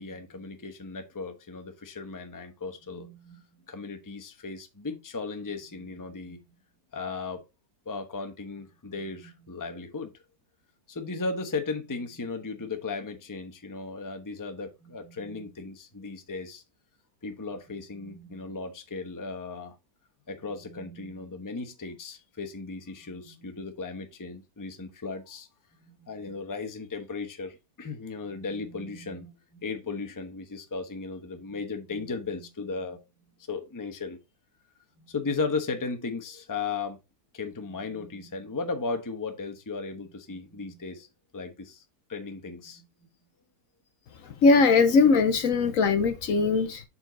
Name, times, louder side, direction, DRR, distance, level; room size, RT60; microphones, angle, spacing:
voice 1, 0.0-6.4 6.9-7.4 7.9-10.1 10.9-16.6 17.2-19.7 20.3-25.5 25.8-33.0 33.5-34.2 35.0-37.0 37.3-41.1 41.3-41.8 42.1-42.9, left 4 dB, 15° left, 0.8 m, -36 dB
voice 2, 44.2-46.8, left 4 dB, 65° left, 1.1 m, -21 dB
6.9 x 4.5 x 3.9 m
omnidirectional pair, 1.7 m